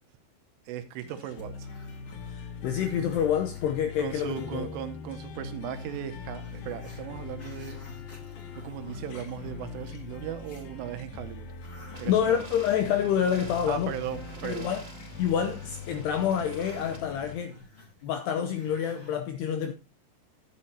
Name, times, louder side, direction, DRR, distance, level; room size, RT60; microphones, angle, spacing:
voice 1, 0.7-1.7 4.0-7.9 8.6-11.5 12.0-12.5 13.7-14.7, right 10 dB, 85° right, 3.5 m, -37 dB
sound 1, 1.0-17.3, left 5 dB, 65° left, 2.5 m, -42 dB
Growling, 1.3-4.8 5.2-5.3 5.6-10.7 11.1-19.2, left 1 dB, 20° left, 3.0 m, -53 dB
voice 2, 2.2-4.7 12.1-13.9 14.4-14.8 15.2-17.6 18.0-19.7, left 8 dB, 80° left, 2.4 m, -27 dB
sound 2, 11.9-17.0, right 2 dB, 25° right, 1.4 m, -49 dB
12.5 x 9.1 x 2.8 m
omnidirectional pair, 5.7 m